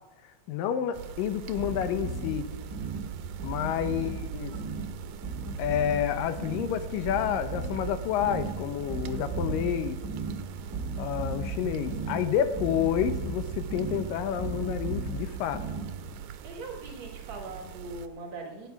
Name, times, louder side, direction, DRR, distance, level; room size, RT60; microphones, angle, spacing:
voice 1, 0.5-2.5 3.4-4.5 5.6-10.0 11.0-15.6, left 9 dB, 80° left, 10 dB, 2.6 m, -29 dB
sound 1, 0.9-18.1, right 8 dB, 80° right, 2.4 m, -41 dB
sound 2, 1.6-16.2, right 3 dB, 30° right, 2.4 m, -36 dB
voice 2, 3.9-4.2 16.4-18.7, right 3 dB, 55° right, 2 dB, 2.8 m, -41 dB
17.0 x 9.6 x 5.8 m, 1.2 s
omnidirectional pair, 3.9 m